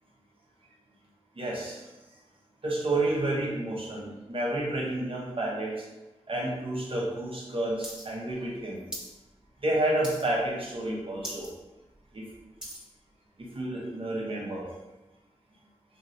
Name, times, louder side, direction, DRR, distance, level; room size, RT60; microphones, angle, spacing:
voice 1, 1.4-1.8 2.6-5.7 6.3-8.8 9.6-11.5 12.1-12.2 13.5-14.7, right 1 dB, 55° right, -3 dB, 0.9 m, -30 dB
sound 1, 7.8-8.0 8.3-9.1 9.5-9.7 10.0-10.5 10.8-10.9 11.2-11.5 11.9-12.9 13.5-13.6, equal, 5° right, 1.1 m, -40 dB
3.0 x 3.0 x 2.7 m, 1.1 s
cardioid pair, 50°, 11 cm